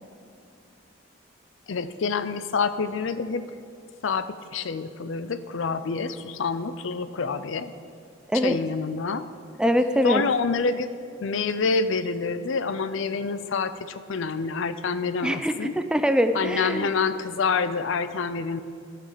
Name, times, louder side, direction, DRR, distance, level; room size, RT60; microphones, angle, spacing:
voice 1, 1.7-3.4 4.0-7.7 8.4-9.3 10.0-10.9 11.2-15.7 16.3-18.6, left 4 dB, 70° left, 12 dB, 0.5 m, -27 dB
voice 2, 9.6-10.2 15.2-16.9, equal, 5° right, 9 dB, 0.4 m, -23 dB
15.5 x 5.9 x 5.0 m, 2.5 s
head